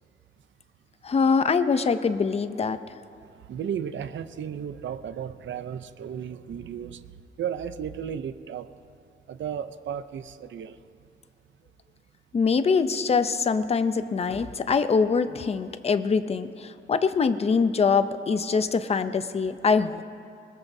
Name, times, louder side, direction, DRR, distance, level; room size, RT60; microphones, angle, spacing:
voice 1, 1.0-2.8 12.3-20.0, left 5 dB, 30° left, 11 dB, 0.5 m, -24 dB
voice 2, 3.5-7.0 7.4-8.7 9.3-10.8, right 8 dB, 70° right, 11 dB, 0.5 m, -34 dB
21.0 x 20.0 x 2.7 m, 2.4 s
wide cardioid pair, 175°, 21 cm